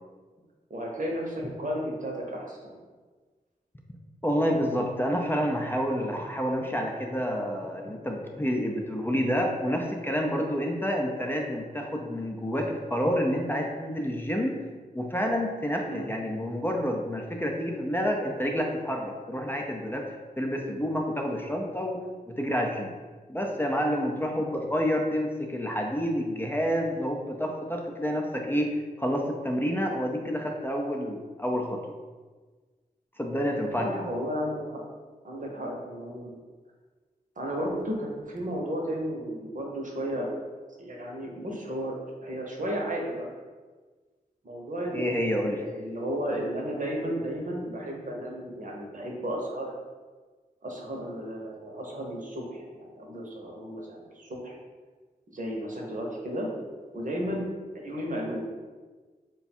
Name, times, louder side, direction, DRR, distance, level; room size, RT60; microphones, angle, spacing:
voice 1, 0.7-2.8 15.9-16.1 33.8-34.8 35.2-36.4 37.4-40.3 40.8-41.9 42.2-43.3 44.4-49.9 50.6-54.6 55.3-56.5 56.9-58.5, equal, 55° right, -1 dB, 0.9 m, -33 dB
voice 2, 4.2-14.6 14.9-22.0 22.3-22.9 23.3-28.7 29.0-32.0 33.2-34.0 44.9-45.6, equal, 15° left, 1 dB, 0.5 m, -29 dB
3.4 x 2.3 x 4.2 m, 1.4 s
cardioid pair, 50°, 16 cm